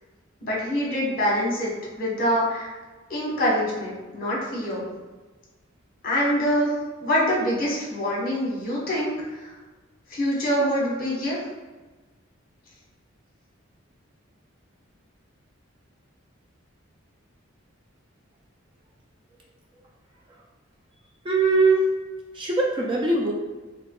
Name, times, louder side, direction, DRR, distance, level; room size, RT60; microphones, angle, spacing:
voice 1, 0.4-1.7 2.0-2.7 3.1-4.9 6.0-6.7 7.0-9.5 10.1-11.4, equal, 45° left, -4 dB, 1.0 m, -25 dB
voice 2, 21.3-21.9 22.4-23.3, right 3 dB, 25° right, -1 dB, 0.3 m, -21 dB
3.5 x 2.7 x 2.2 m, 1.2 s
head